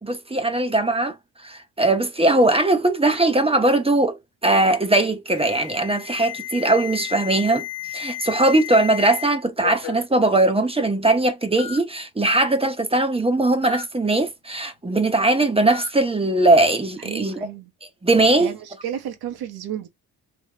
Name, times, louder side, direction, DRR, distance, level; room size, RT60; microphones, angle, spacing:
voice 1, 0.0-1.2 1.4-7.6 7.9-17.5 18.0-18.5, right 2 dB, 15° right, 0.9 m, -20 dB
Alarm, 5.3-9.3 9.6-10.0 10.9-11.0 11.6-11.8 13.6-13.8 15.7-15.9, left 15 dB, 65° left, 0.8 m, -34 dB
voice 2, 17.0-17.7 18.4-19.9, right 9 dB, 70° right, 1.2 m, -32 dB
3.3 x 3.1 x 2.9 m
supercardioid pair, 70°, 38 cm